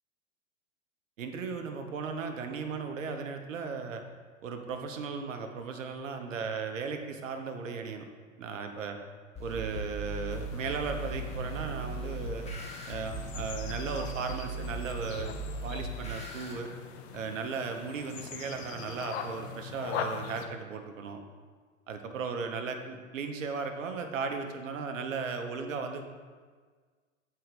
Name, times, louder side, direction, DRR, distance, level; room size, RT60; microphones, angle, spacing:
voice 1, 1.2-4.0 4.4-8.1 8.4-9.0 9.4-12.5 12.9-16.7 17.1-21.2 21.9-26.0, right 5 dB, 70° right, 6 dB, 1.0 m, -36 dB
sound 1, 9.3-16.5, right 2 dB, 15° left, 1.5 m, -38 dB
sound 2, 10.3-20.5, left 7 dB, 55° left, 0.8 m, -42 dB
7.8 x 4.7 x 5.1 m, 1.5 s
hypercardioid pair, 100°, 40 cm